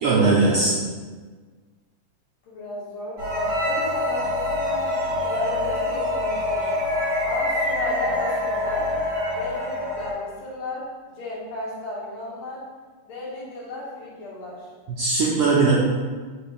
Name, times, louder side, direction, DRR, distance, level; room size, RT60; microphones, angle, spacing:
voice 1, 0.0-0.7 15.0-15.7, right 3 dB, 80° right, -7 dB, 1.4 m, -19 dB
voice 2, 2.4-6.7 7.2-8.9 9.3-10.9 11.1-12.6 13.0-14.7, left 2 dB, 55° left, -6 dB, 1.6 m, -34 dB
sound 1, 3.2-10.1, left 1 dB, 35° right, 1.3 m, -25 dB
4.5 x 3.3 x 3.4 m, 1.5 s
omnidirectional pair, 3.5 m